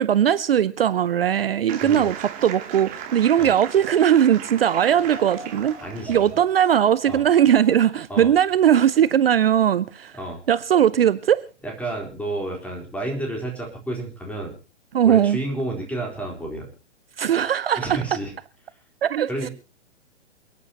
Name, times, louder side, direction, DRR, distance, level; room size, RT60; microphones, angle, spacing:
voice 1, 0.0-5.8 6.1-10.2 10.5-11.4 14.9-15.4 17.2-18.0 19.0-19.5, right 9 dB, 55° right, 0.7 m, -19 dB
sound 1, 1.7-6.4, right 9 dB, 25° right, 2.7 m, -37 dB
Laughter / Crowd, 4.5-10.0 10.5-10.6 11.4-11.7, right 3 dB, 75° right, 2.6 m, -44 dB
voice 2, 5.8-6.2 7.1-7.2 8.1-8.3 10.1-10.4 11.6-14.6 15.0-16.7 17.8-18.3 19.3-19.5, right 1 dB, 5° left, 3.9 m, -30 dB
28.5 x 9.8 x 2.9 m
figure-of-eight pair, 120°, 35 cm